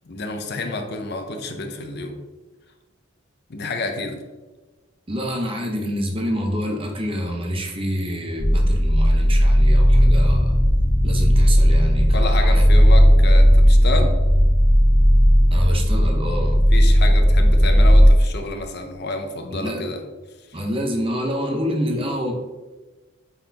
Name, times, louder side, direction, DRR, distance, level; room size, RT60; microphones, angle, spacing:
voice 1, 0.0-2.2 3.5-4.2 12.1-14.2 16.7-20.0 20.5-20.6, left 2 dB, 50° left, 5 dB, 0.6 m, -29 dB
voice 2, 5.1-10.6 11.0-12.7 15.5-16.6 19.5-19.9 20.5-22.3, equal, 25° right, 2 dB, 0.8 m, -27 dB
sound 1, 8.4-18.1, equal, 5° left, 0.4 m, -15 dB
8.6 x 4.0 x 2.8 m, 1.2 s
head